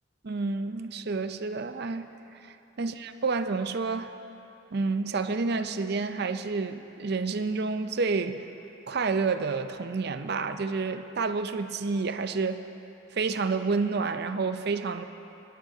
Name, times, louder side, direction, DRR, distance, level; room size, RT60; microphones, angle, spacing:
voice 1, 0.2-2.1 2.4-4.1 4.7-8.4 8.9-12.7 13.1-15.0, right 4 dB, 55° right, 10 dB, 0.5 m, -29 dB
26.0 x 11.0 x 2.8 m, 2.9 s
head